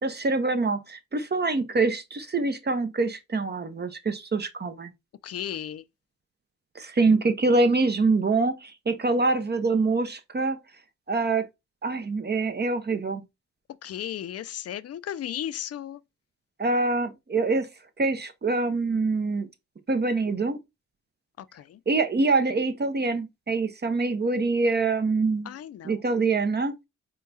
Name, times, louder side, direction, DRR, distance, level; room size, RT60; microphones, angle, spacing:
voice 1, 0.0-4.9 6.7-10.6 11.1-11.4 11.8-13.2 16.6-17.7 18.0-19.5 19.9-20.6 21.9-25.5 25.8-26.7, right 3 dB, 35° right, 0.7 m, -25 dB
voice 2, 5.2-5.8 13.8-16.0 21.4-21.8 25.4-26.0, left 10 dB, 55° left, 0.5 m, -35 dB
4.7 x 2.3 x 3.9 m
cardioid pair, 70°, 30 cm